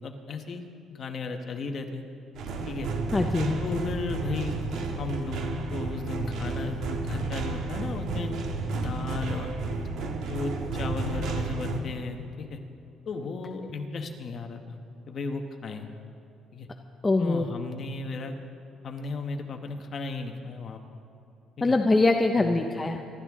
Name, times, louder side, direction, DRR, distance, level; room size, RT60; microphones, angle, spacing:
voice 1, 0.0-0.6 0.9-2.0 2.7-2.9 3.6-8.3 8.7-9.5 10.3-12.6 13.0-14.8 15.1-15.9 16.5-16.7 17.2-18.4 18.8-20.8 21.6-21.7 22.3-22.7, left 4 dB, 35° left, 4 dB, 1.2 m, -35 dB
sound 1, 2.3-11.8, right 3 dB, 65° right, 1.4 m, -32 dB
voice 2, 3.1-3.6 17.0-17.4 21.6-23.0, left 2 dB, 15° left, 4 dB, 0.5 m, -23 dB
26.0 x 12.0 x 3.7 m, 2.7 s
cardioid pair, 175°, 0 cm